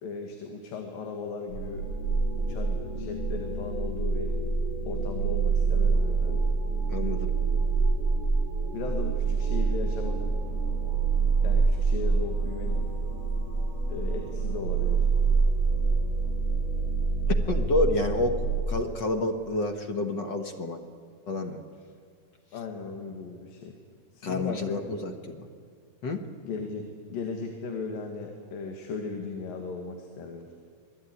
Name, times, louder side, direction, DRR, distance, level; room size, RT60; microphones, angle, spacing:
voice 1, 0.0-1.9 2.4-4.3 4.9-6.5 8.7-10.3 11.4-12.9 13.9-15.1 22.5-23.8 24.1-24.8 26.4-30.5, left 4 dB, 85° left, 3 dB, 3.6 m, -37 dB
sound 1, 1.5-18.6, right 4 dB, 70° left, 7.2 m, -26 dB
voice 2, 6.9-7.3 17.3-20.8 21.3-21.6 24.2-25.5 26.0-26.2, left 2 dB, 55° left, 6 dB, 1.3 m, -29 dB
26.5 x 20.0 x 9.8 m, 2.1 s
omnidirectional pair, 3.9 m